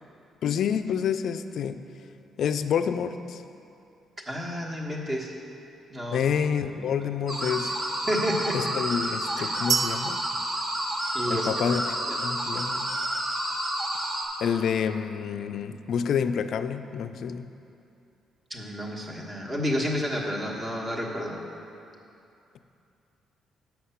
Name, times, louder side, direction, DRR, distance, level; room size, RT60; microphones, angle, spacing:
voice 1, 0.4-1.9 2.4-3.4 6.1-7.7 8.5-10.2 11.3-11.8 12.2-12.9 14.4-17.5, left 7 dB, 65° left, 10 dB, 0.3 m, -28 dB
voice 2, 4.3-5.4 5.9-6.2 6.8-7.1 8.1-8.7 9.4-9.6 11.1-11.5 12.1-12.2 18.5-21.4, equal, 30° right, -2 dB, 1.2 m, -30 dB
sound 1, 7.3-14.2, right 1 dB, 50° right, 1.3 m, -30 dB
sound 2, 9.7-11.6, right 6 dB, 70° right, 0.3 m, -31 dB
6.4 x 5.8 x 5.7 m, 2.7 s
cardioid pair, 90°, 0 cm